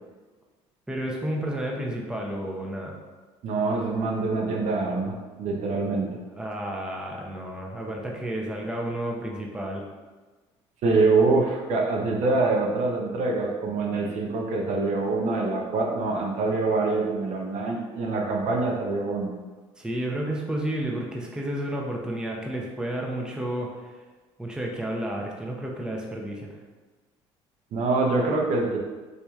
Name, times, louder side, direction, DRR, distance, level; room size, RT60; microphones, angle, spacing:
voice 1, 0.9-3.0 6.3-9.8 19.8-23.7 24.4-26.6, right 1 dB, 5° right, -1 dB, 0.6 m, -31 dB
voice 2, 3.4-6.1 10.8-19.3 27.7-28.8, right 3 dB, 65° right, 0 dB, 0.7 m, -25 dB
4.0 x 3.0 x 2.4 m, 1.3 s
supercardioid pair, 80°, 13 cm